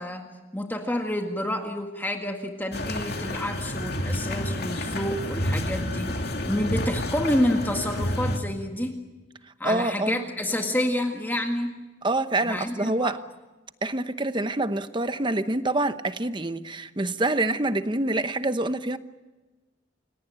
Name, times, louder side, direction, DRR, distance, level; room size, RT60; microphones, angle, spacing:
voice 1, 0.0-9.0 9.6-11.8 12.4-13.2, left 1 dB, 10° left, 1.9 m, -29 dB
sound 1, 2.7-8.4, left 1 dB, 55° left, 2.6 m, -29 dB
voice 2, 9.6-10.3 12.0-13.2 13.8-19.0, right 2 dB, 25° right, 0.9 m, -26 dB
29.0 x 18.0 x 8.8 m
head